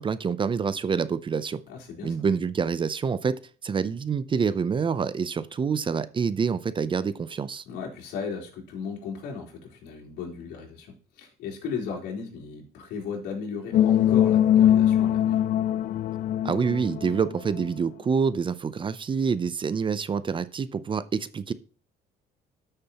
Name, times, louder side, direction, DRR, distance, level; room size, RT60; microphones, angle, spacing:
voice 1, 0.0-1.6 2.0-3.3 3.6-7.6 16.4-21.5, right 6 dB, 30° right, 15 dB, 0.6 m, -27 dB
voice 2, 1.7-2.2 7.7-10.9 11.2-15.4, left 5 dB, 85° left, -2 dB, 3.8 m, -36 dB
sound 1, 13.7-17.6, left 11 dB, 50° left, 0.4 m, -21 dB
12.5 x 6.7 x 2.9 m, 0.39 s
cardioid pair, 110°, 17 cm